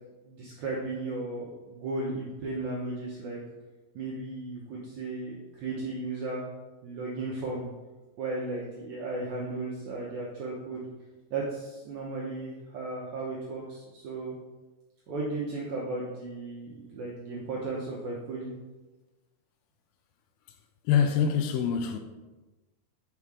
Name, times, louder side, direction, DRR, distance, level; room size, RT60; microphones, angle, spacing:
voice 1, 0.2-3.4 3.9-6.4 6.8-7.7 8.2-10.9 11.3-14.4 15.1-18.5, right 2 dB, 80° right, 1.7 m, -35 dB
voice 2, 20.9-22.0, left 7 dB, 80° left, 2.3 m, -24 dB
6.9 x 4.2 x 4.8 m
omnidirectional pair, 4.6 m